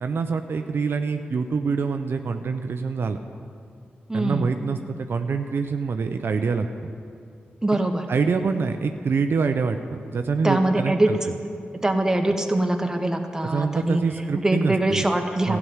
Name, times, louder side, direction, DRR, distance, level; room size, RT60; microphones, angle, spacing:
voice 1, 0.0-3.2 4.1-6.9 8.1-11.2 13.4-15.1 15.5-15.6, right 5 dB, 65° right, 7 dB, 0.5 m, -25 dB
voice 2, 4.1-4.5 7.6-8.1 10.4-11.1 11.8-14.0 14.4-15.6, right 1 dB, 15° right, 4 dB, 1.3 m, -23 dB
13.0 x 6.0 x 9.5 m, 2.4 s
cardioid pair, 45°, 4 cm